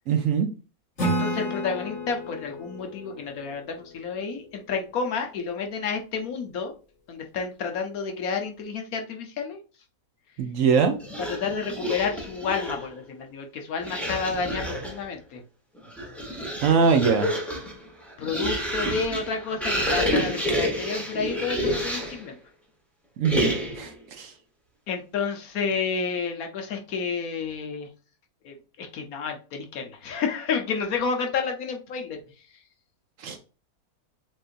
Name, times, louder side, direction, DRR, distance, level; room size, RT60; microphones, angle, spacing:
voice 1, 0.1-0.5 10.4-11.0 16.6-17.3 23.2-23.9 24.2-24.3 33.2-33.4, right 6 dB, 65° right, 6 dB, 1.0 m, -22 dB
voice 2, 1.0-6.7 7.1-9.6 11.2-15.4 18.2-22.4 24.9-27.9 28.4-32.2, left 5 dB, 70° left, 4 dB, 1.3 m, -30 dB
Acoustic guitar / Strum, 1.0-4.4, equal, 50° left, 2.2 m, -31 dB
sound 1, 11.0-12.9 13.8-15.0 15.8-22.3 23.2-23.9, equal, ahead, 0.9 m, -29 dB
7.5 x 2.6 x 2.5 m, 0.35 s
omnidirectional pair, 1.6 m